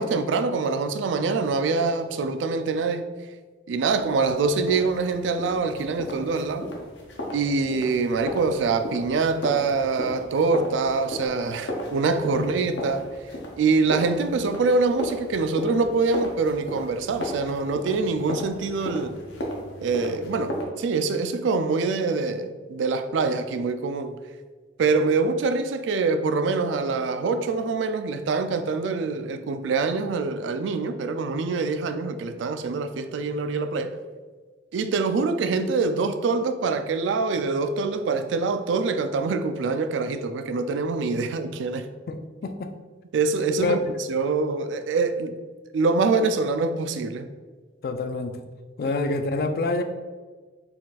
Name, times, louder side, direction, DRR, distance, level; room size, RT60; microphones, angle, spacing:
voice 1, 0.0-3.1 3.7-6.7 7.3-13.1 13.6-19.1 19.8-24.2 24.8-33.9 34.7-41.9 43.1-43.8 44.1-45.4 45.7-47.3, right 4 dB, 85° right, 0.3 m, -25 dB
sound 1, 4.0-20.6, left 1 dB, 85° left, 0.8 m, -35 dB
voice 2, 42.1-42.7 43.6-43.8 47.8-48.4 48.8-49.8, left 3 dB, 50° left, 0.3 m, -27 dB
4.2 x 2.4 x 4.0 m
head